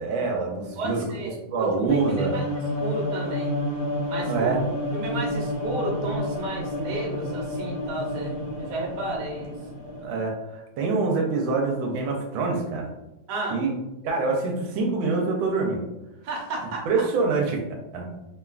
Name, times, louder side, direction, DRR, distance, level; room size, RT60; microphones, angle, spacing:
voice 1, 0.0-1.0 1.5-2.4 4.2-4.6 10.0-12.9 13.5-13.7 14.0-15.8 16.9-17.6 17.9-18.1, right 4 dB, 85° right, 0 dB, 1.3 m, -25 dB
voice 2, 0.8-1.7 2.1-3.5 4.1-4.5 4.9-9.6 13.3-13.6 16.2-17.0, right 2 dB, 65° right, -2 dB, 1.2 m, -33 dB
sound 1, 1.9-10.1, left 1 dB, 55° left, 1.1 m, -30 dB
3.4 x 2.2 x 2.3 m, 0.94 s
omnidirectional pair, 2.2 m